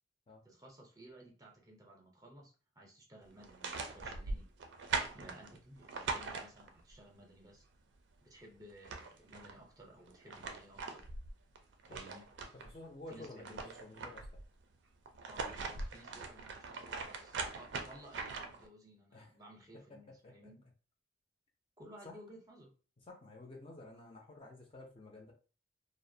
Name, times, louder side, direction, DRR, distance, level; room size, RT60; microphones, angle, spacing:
voice 1, 0.4-4.5 5.1-7.7 8.2-11.0 11.9-12.3 13.1-13.7 15.3-20.6 21.8-22.7, right 1 dB, 20° right, 0 dB, 0.5 m, -56 dB
sound 1, 3.4-6.9 8.4-8.5 8.7-9.6 10.1-12.7 13.1-14.5 15.1-18.7, right 4 dB, 75° right, 0.4 m, -41 dB
voice 2, 12.6-14.3 16.1-16.3 19.1-19.3 20.2-20.5 22.0-22.1 23.1-25.3, left 2 dB, 30° left, 0 dB, 0.4 m, -51 dB
2.5 x 2.1 x 2.6 m, 0.35 s
head